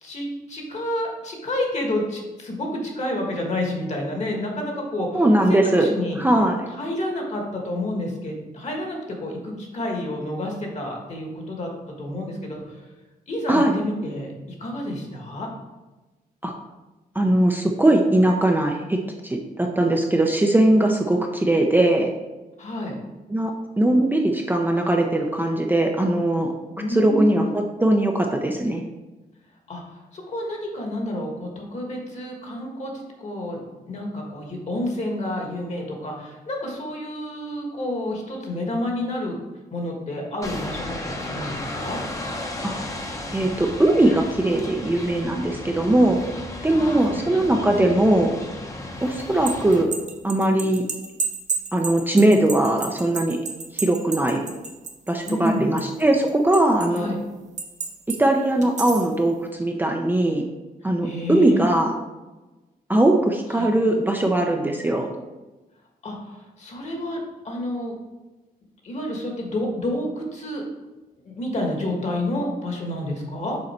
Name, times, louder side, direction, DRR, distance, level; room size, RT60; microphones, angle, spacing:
voice 1, 0.0-6.2 6.7-12.8 13.3-14.3 14.6-15.5 22.6-23.0 26.8-27.6 29.7-32.9 33.2-33.6 33.9-39.3 39.7-42.0 46.7-48.0 55.2-55.7 56.9-57.2 61.0-61.7 63.5-63.7 66.0-67.2 67.4-67.9 68.8-70.6 71.2-73.6, left 1 dB, 45° left, 1 dB, 1.5 m, -29 dB
voice 2, 5.1-5.9 6.2-6.6 13.5-13.7 16.4-16.5 17.2-22.1 23.3-26.5 26.9-28.8 42.6-42.8 43.3-46.2 46.6-48.3 49.0-49.9 50.2-50.8 51.7-53.4 53.7-54.4 55.1-57.1 58.2-60.4 60.8-61.9 62.9-65.1, right 1 dB, 10° right, 2 dB, 0.5 m, -20 dB
sound 1, 40.4-49.8, left 1 dB, 20° left, 0.8 m, -34 dB
sound 2, 49.2-55.5 55.8-57.0 57.6-58.2 58.6-59.1, right 5 dB, 50° right, 0.8 m, -31 dB
6.5 x 4.2 x 4.3 m, 1.1 s
wide cardioid pair, 125°, 16 cm